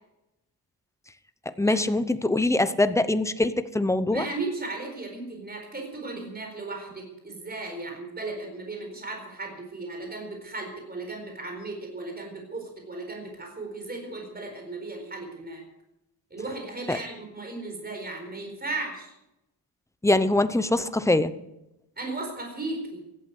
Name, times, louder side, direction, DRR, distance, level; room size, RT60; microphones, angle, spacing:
voice 1, 1.6-4.3 16.9-17.0 20.0-21.3, left 2 dB, 5° left, 12 dB, 0.7 m, -23 dB
voice 2, 4.1-15.6 16.3-19.1 22.0-23.1, right 2 dB, 25° right, 2 dB, 4.4 m, -36 dB
16.0 x 12.0 x 6.5 m, 0.88 s
wide cardioid pair, 140°, 41 cm